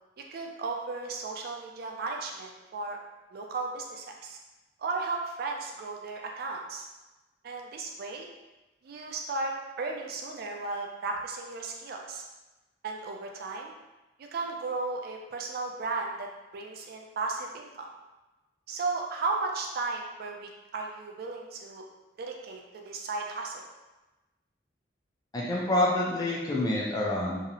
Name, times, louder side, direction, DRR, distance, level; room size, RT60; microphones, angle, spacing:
voice 1, 0.3-3.0 3.3-4.4 4.8-6.9 7.4-8.3 8.8-12.2 12.8-13.7 14.2-17.9 18.7-21.8 22.2-23.6, right 3 dB, 55° right, 1 dB, 0.4 m, -35 dB
voice 2, 25.3-27.4, left 1 dB, 20° left, -4 dB, 0.3 m, -27 dB
2.7 x 2.0 x 2.6 m, 1.1 s
head